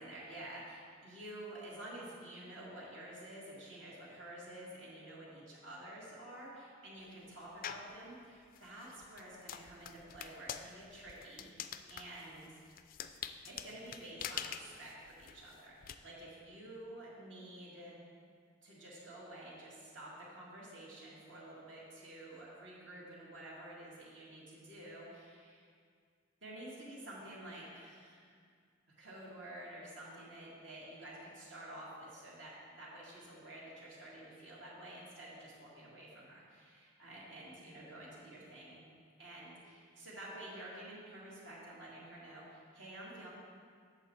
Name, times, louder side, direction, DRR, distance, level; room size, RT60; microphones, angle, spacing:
voice 1, 0.0-12.6 13.5-18.0 18.6-25.7 26.4-28.3 29.0-38.8 39.2-43.3, right 1 dB, 75° right, -7 dB, 2.1 m, -50 dB
sound 1, 7.6-8.0 8.5-15.9, left 9 dB, 45° left, 0.3 m, -45 dB
8.1 x 6.7 x 4.3 m, 2.1 s
head